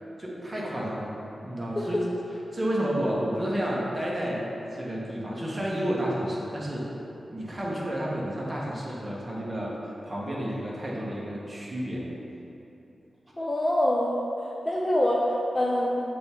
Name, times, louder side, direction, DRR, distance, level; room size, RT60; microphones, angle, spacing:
voice 1, 0.2-1.1 1.4-2.1 2.5-4.5 4.7-6.8 7.3-9.7 10.0-12.0, equal, 20° right, -5 dB, 1.0 m, -30 dB
voice 2, 13.4-14.1 14.4-16.0, left 1 dB, 20° left, -3 dB, 0.4 m, -25 dB
6.5 x 3.4 x 4.2 m, 2.9 s
wide cardioid pair, 175°, 0 cm